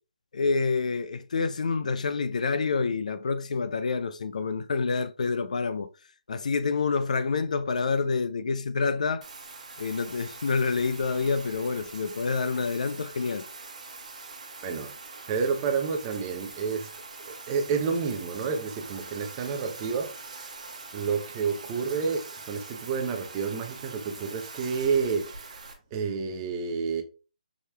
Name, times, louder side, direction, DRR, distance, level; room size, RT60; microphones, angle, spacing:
voice 1, 0.3-5.9 6.3-9.2 9.8-13.4, left 4 dB, 60° left, 0.4 m, -27 dB
Bathtub (filling or washing), 9.2-25.7, right 4 dB, 60° right, 1.1 m, -44 dB
voice 2, 14.6-14.9 15.3-16.9 17.2-20.5 20.9-27.0, right 5 dB, 25° right, 0.6 m, -30 dB
4.9 x 2.8 x 2.2 m
figure-of-eight pair, 150°, 4 cm